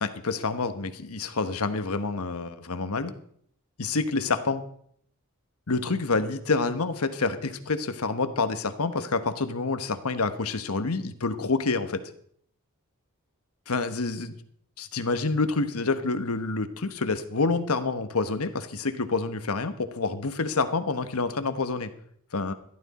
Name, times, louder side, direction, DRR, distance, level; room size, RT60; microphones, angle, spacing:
voice 1, 0.0-3.1 3.8-4.6 5.7-12.0 13.7-14.3 14.8-21.9 22.3-22.5, left 3 dB, 80° left, 9 dB, 1.2 m, -28 dB
15.0 x 12.0 x 4.2 m, 0.64 s
head